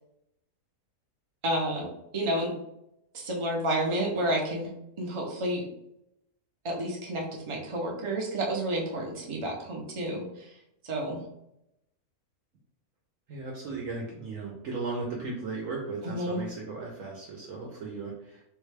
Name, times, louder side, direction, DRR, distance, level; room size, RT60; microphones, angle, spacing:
voice 1, 1.4-1.9 2.1-2.5 3.1-4.7 5.0-5.6 6.6-10.2 10.8-11.2 16.0-16.4, right 1 dB, 50° right, -1 dB, 0.3 m, -30 dB
voice 2, 13.3-18.5, right 3 dB, 65° right, -2 dB, 0.9 m, -36 dB
3.5 x 2.2 x 3.2 m, 0.81 s
omnidirectional pair, 1.6 m